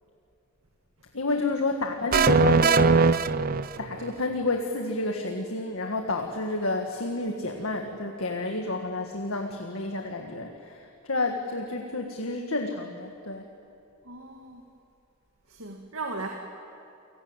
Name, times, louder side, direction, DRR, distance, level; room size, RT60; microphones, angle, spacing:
voice 1, 1.1-3.1 3.8-13.4, left 2 dB, 80° left, 3 dB, 1.9 m, -30 dB
sound 1, 2.1-4.1, right 5 dB, 45° right, 0.5 m, -20 dB
voice 2, 14.0-14.6 15.5-16.3, right 3 dB, 80° right, 2 dB, 2.1 m, -36 dB
29.5 x 18.5 x 9.1 m, 2.6 s
head